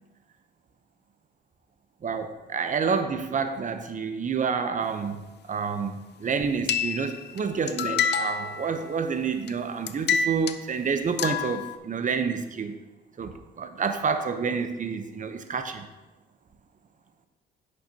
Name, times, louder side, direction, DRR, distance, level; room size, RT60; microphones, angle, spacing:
voice 1, 2.0-5.2 5.5-12.7 13.2-15.9, right 5 dB, 40° right, 8 dB, 0.8 m, -28 dB
sound 1, 6.7-7.4 7.7-9.1 9.5-9.6 9.9-10.6 11.2-11.8, left 6 dB, 60° left, 0.5 m, -27 dB
10.0 x 6.6 x 2.9 m, 1.1 s
cardioid pair, 90°, 20 cm